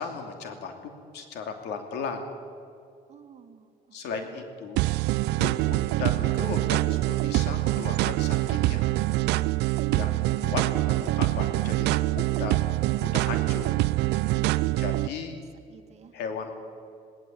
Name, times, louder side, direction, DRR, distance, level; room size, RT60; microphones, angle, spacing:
voice 1, 0.0-2.3 3.9-4.8 5.4-8.9 9.9-12.6 13.0-13.7 14.8-15.4 16.1-16.5, left 5 dB, 80° left, 5 dB, 2.8 m, -36 dB
voice 2, 3.1-4.5 14.7-14.9 15.3-15.4 15.7-16.2, right 7 dB, 40° right, 4 dB, 2.2 m, -53 dB
sound 1, 4.8-15.1, right 18 dB, 85° right, 0.5 m, -25 dB
19.0 x 18.0 x 8.7 m, 2.4 s
cardioid pair, 110°, 17 cm